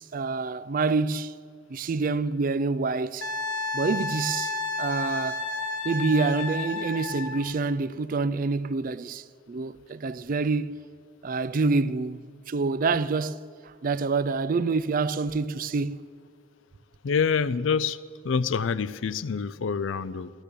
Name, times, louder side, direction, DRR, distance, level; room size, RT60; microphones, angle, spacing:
voice 1, 0.0-1.3 1.7-3.3 3.7-5.4 5.8-10.8 11.2-13.4 13.6-16.0, right 4 dB, 45° right, 0.4 m, -27 dB
Wind instrument woodwind instrument, 3.2-7.4 10.1-10.3, left 3 dB, 85° left, 1.1 m, -31 dB
voice 2, 17.0-20.3, left 6 dB, 70° left, 0.4 m, -27 dB
14.0 x 12.0 x 6.8 m
head